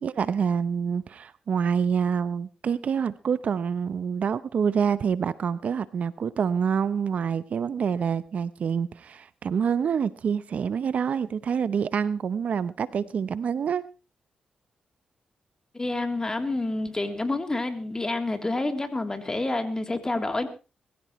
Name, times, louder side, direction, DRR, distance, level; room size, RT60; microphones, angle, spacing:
voice 1, 0.0-13.8, right 7 dB, 65° right, 15 dB, 0.8 m, -27 dB
voice 2, 15.7-20.5, left 2 dB, 25° left, 6 dB, 3.3 m, -28 dB
21.5 x 15.0 x 3.2 m, 0.32 s
cardioid pair, 60°, 3 cm